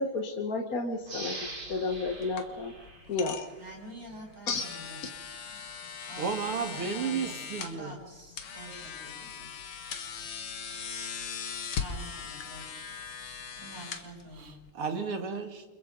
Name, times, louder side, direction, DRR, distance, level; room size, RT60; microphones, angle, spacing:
voice 1, 0.0-1.4 1.7-2.7 3.1-3.4 4.5-4.6, left 3 dB, 45° left, 1.7 m, -31 dB
sound 1, 1.0-3.7 4.2-4.3, right 2 dB, 40° right, 3.7 m, -43 dB
sound 2, 1.4-14.7, left 6 dB, 70° left, 2.3 m, -40 dB
voice 2, 3.6-5.0 6.1-9.5 9.8-10.0 11.7-12.9 13.6-14.5, right 1 dB, 55° right, 8.6 m, -47 dB
voice 3, 6.2-7.9 14.4-15.6, right 5 dB, 85° right, 2.9 m, -33 dB
29.0 x 26.5 x 4.0 m
omnidirectional pair, 2.4 m